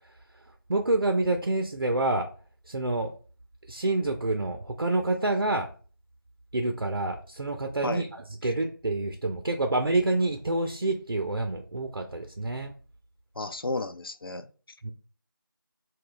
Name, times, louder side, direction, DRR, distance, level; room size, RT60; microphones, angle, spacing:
voice 1, 0.7-2.3 2.7-3.1 3.7-5.7 6.5-12.7 14.8-14.9, right 2 dB, 75° right, 0.5 m, -27 dB
voice 2, 13.4-14.5, left 2 dB, 75° left, 0.4 m, -33 dB
2.9 x 2.2 x 3.8 m
figure-of-eight pair, 170°, 12 cm